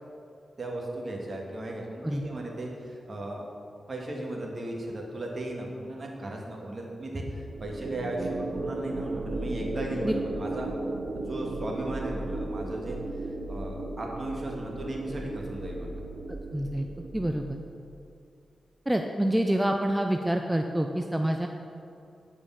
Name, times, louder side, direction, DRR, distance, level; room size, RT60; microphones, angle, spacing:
voice 1, 0.6-3.5 3.9-10.7 11.1-13.0 13.5-16.0, right 1 dB, 45° right, -1 dB, 1.8 m, -36 dB
sound 1, 7.5-17.9, right 2 dB, 65° right, 0.7 m, -35 dB
voice 2, 16.5-16.9 17.1-17.6 18.9-21.5, right 1 dB, 10° right, 4 dB, 0.5 m, -27 dB
9.4 x 5.0 x 5.7 m, 2.6 s
cardioid pair, 70°, 0 cm